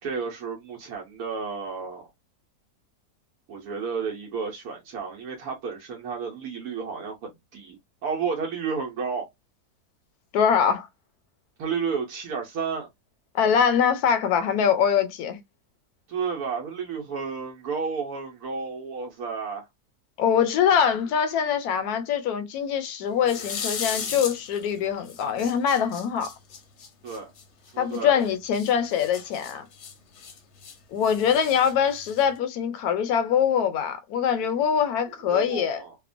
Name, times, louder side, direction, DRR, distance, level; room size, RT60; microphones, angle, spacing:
voice 1, 0.0-2.1 3.5-9.3 11.6-12.9 16.1-19.7 27.0-27.3 27.7-28.3 35.2-36.0, right 5 dB, 75° right, 1.2 m, -32 dB
voice 2, 10.3-10.9 13.3-15.4 20.2-26.3 27.8-29.7 30.9-35.8, left 8 dB, 80° left, 1.1 m, -23 dB
sound 1, 23.2-24.7 25.1-28.0 28.5-30.8 31.0-32.4, left 6 dB, 60° left, 0.8 m, -36 dB
2.8 x 2.1 x 2.5 m
omnidirectional pair, 1.6 m